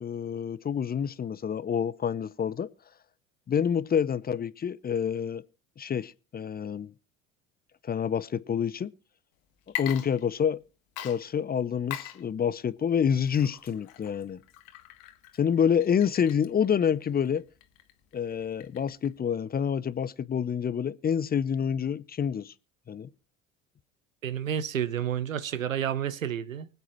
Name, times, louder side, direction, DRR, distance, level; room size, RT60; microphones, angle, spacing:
voice 1, 0.0-2.7 3.5-5.4 5.8-6.9 7.8-8.9 9.8-10.6 11.0-14.4 15.4-17.4 18.1-22.5 22.9-23.1, left 7 dB, 25° left, 0.7 m, -27 dB
Water / Liquid, 9.6-10.6 11.0-19.2, left 14 dB, 60° left, 1.7 m, -42 dB
voice 2, 24.2-26.7, right 9 dB, 90° right, 0.8 m, -30 dB
24.0 x 8.1 x 3.1 m
hypercardioid pair, 70°, 39 cm